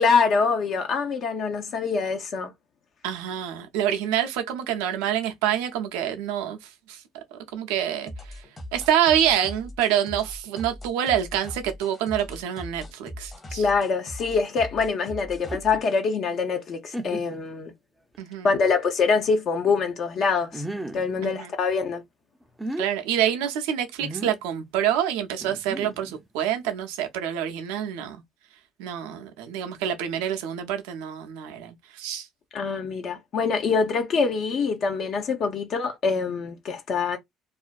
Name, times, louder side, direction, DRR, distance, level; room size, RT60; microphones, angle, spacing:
voice 1, 0.0-2.5 13.5-17.7 18.4-20.6 20.9-22.0 32.5-37.2, left 5 dB, 55° left, 0.5 m, -24 dB
voice 2, 3.0-7.0 7.3-8.1 8.7-13.6 18.2-18.5 21.2-21.5 22.8-28.2 28.8-32.3, right 10 dB, 75° right, 0.4 m, -27 dB
sound 1, 8.1-16.0, left 1 dB, 30° left, 0.9 m, -40 dB
sound 2, 15.4-15.8 16.4-16.5 16.9-17.5 18.1-18.2 20.5-21.1 22.4-22.9 24.0-24.4 25.4-26.2, right 1 dB, 10° right, 0.4 m, -34 dB
2.4 x 2.1 x 2.4 m
hypercardioid pair, 60°, 0 cm